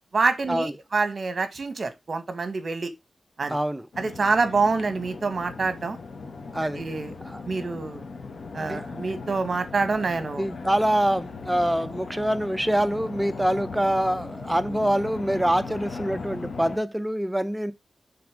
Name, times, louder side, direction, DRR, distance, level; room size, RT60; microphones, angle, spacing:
voice 1, 0.1-2.9 3.4-3.6 4.0-6.0 6.8-7.1 7.5-8.0 8.5-10.4, right 4 dB, 55° right, 1.4 m, -26 dB
voice 2, 3.5-3.9 6.5-6.8 7.2-7.4 8.7-8.8 10.4-17.7, right 1 dB, 10° right, 0.7 m, -25 dB
sound 1, 3.9-16.8, left 4 dB, 70° left, 1.5 m, -38 dB
7.0 x 3.6 x 4.9 m
wide cardioid pair, 95°, 0 cm